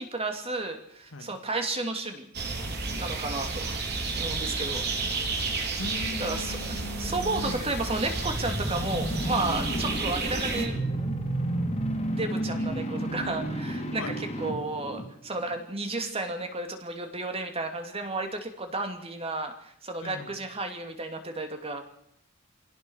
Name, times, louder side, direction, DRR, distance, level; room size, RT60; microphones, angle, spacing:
voice 1, 0.0-2.3 2.9-3.7 4.2-4.8 6.2-10.8 11.7-21.8, right 2 dB, 30° right, 5 dB, 2.7 m, -33 dB
sound 1, 2.3-10.6, right 3 dB, 55° right, 3.9 m, -32 dB
voice 2, 2.9-3.2 5.8-7.8 9.6-9.8 14.0-14.2 20.0-20.4, left 2 dB, 85° left, 6 dB, 2.5 m, -39 dB
sound 2, 7.4-15.5, right 1 dB, 30° left, 2.9 m, -32 dB
25.0 x 17.0 x 6.5 m, 0.72 s
head